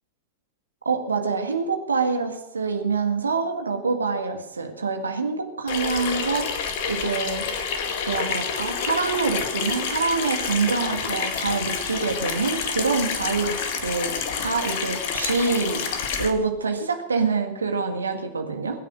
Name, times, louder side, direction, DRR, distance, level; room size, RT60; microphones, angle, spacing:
voice 1, 0.9-6.5 6.8-7.4 8.1-15.9 16.2-18.8, right 4 dB, 75° right, 5 dB, 1.9 m, -26 dB
Water tap faucet / Sink (filling or washing), 5.7-16.3, left 6 dB, 50° left, 2.1 m, -28 dB
22.5 x 9.3 x 6.5 m, 0.84 s
figure-of-eight pair, 90°, 0 cm